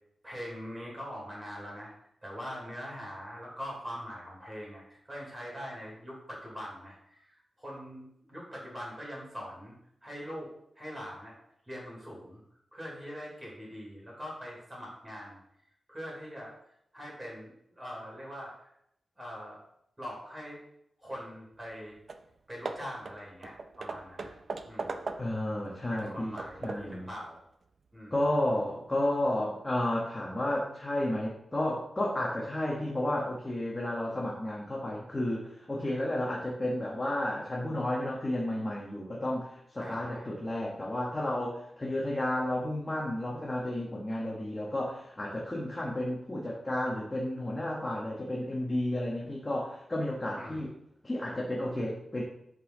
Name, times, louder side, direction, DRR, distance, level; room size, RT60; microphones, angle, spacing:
voice 1, 0.2-1.9 2.2-9.7 10.0-10.5 10.7-11.4 11.7-12.4 12.7-15.4 15.9-16.5 16.9-18.7 19.2-19.6 20.0-20.6 21.0-22.0 22.5-24.4 24.6-25.1 25.9-27.4 27.9-28.3 39.8-40.3 50.4-50.7, equal, 15° right, -3 dB, 3.3 m, -42 dB
Hammer / Wood, 21.7-21.8 22.1-22.3 22.6-25.5 26.0-27.0, right 3 dB, 55° right, 0.5 m, -40 dB
voice 2, 25.2-26.3 26.6-27.1 28.1-39.5 39.7-50.7 51.0-52.2, left 1 dB, 15° left, -4 dB, 1.3 m, -32 dB
8.0 x 5.4 x 3.9 m, 0.74 s
wide cardioid pair, 150°, 0 cm